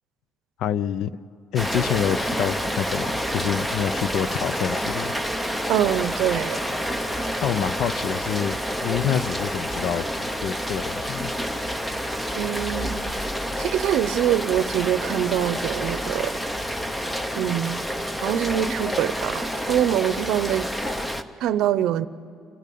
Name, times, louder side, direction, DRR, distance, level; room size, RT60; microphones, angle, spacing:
voice 1, 0.6-1.1 1.5-5.1 7.4-11.3, left 9 dB, 70° left, 17 dB, 0.6 m, -27 dB
Rain, 1.6-21.2, equal, 5° left, 0.8 m, -28 dB
voice 2, 5.7-6.6 12.4-13.2 13.6-16.3 17.4-17.8 18.2-20.7 21.4-22.1, right 11 dB, 75° right, 15 dB, 0.6 m, -24 dB
29.0 x 12.0 x 8.5 m, 2.6 s
cardioid pair, 135°, 0 cm